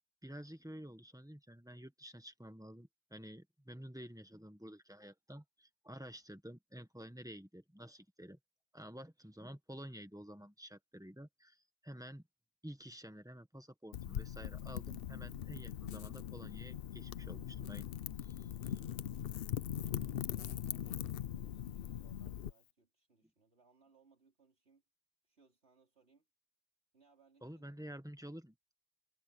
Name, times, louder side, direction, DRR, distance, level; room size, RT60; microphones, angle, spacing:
voice 1, 0.2-8.4 8.7-12.3 12.6-17.9 18.2-18.8 23.2-23.3 27.4-28.6, equal, 5° right, 1.4 m, -51 dB
Wind / Fire, 13.9-22.5, left 10 dB, 65° left, 0.8 m, -41 dB
voice 2, 19.9-24.8 25.2-26.3 26.9-28.0, right 4 dB, 75° right, 4.2 m, -70 dB
omnidirectional pair, 1.1 m